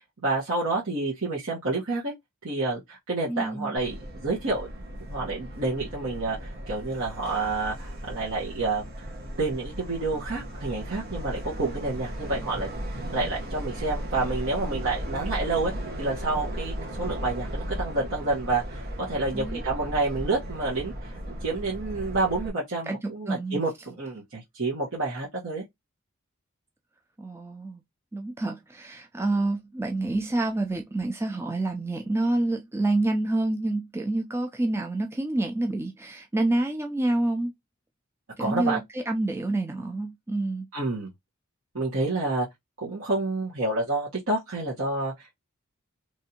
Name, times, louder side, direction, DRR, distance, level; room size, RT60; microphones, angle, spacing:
voice 1, 0.0-2.1 2.4-4.7 5.1-8.9 9.4-12.7 13.1-15.7 16.0-25.6 38.4-38.8 40.7-41.1 41.7-42.5 42.8-45.4, right 3 dB, 70° right, 1.3 m, -29 dB
voice 2, 3.3-3.7 19.3-19.6 22.9-23.6 27.2-27.8 28.1-37.5 38.4-40.7, right 2 dB, 10° right, 0.3 m, -28 dB
Subway metro underground, 3.8-22.5, equal, 50° right, 1.0 m, -36 dB
3.2 x 2.7 x 2.8 m
head